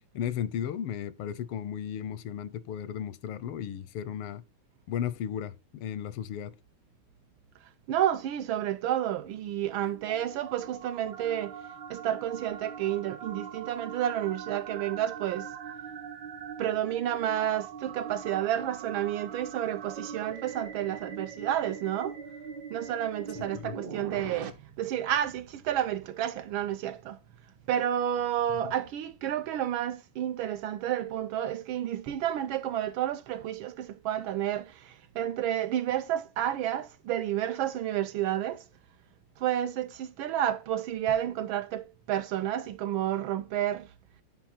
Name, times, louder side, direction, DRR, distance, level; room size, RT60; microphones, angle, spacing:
voice 1, 0.1-4.4 4.9-6.5 23.3-23.7, left 9 dB, 85° left, 1.6 m, -35 dB
voice 2, 7.9-11.6 11.9-15.5 16.6-22.2 22.7-24.5 24.8-27.2 27.7-38.6 39.4-43.9, right 11 dB, 75° right, 1.3 m, -30 dB
sound 1, 9.4-24.5, right 7 dB, 60° right, 1.4 m, -42 dB
10.5 x 4.6 x 4.3 m
omnidirectional pair, 2.4 m